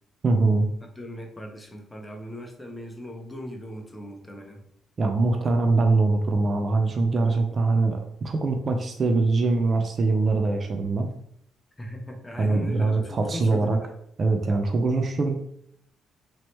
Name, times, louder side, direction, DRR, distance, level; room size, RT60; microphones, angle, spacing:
voice 1, 0.2-0.7 5.0-11.1 12.4-13.8 14.2-15.3, right 3 dB, 45° right, 4 dB, 0.4 m, -23 dB
voice 2, 0.8-4.6 11.8-13.9, equal, 15° left, 1 dB, 0.7 m, -38 dB
3.0 x 2.8 x 3.1 m, 0.71 s
cardioid pair, 90°, 0 cm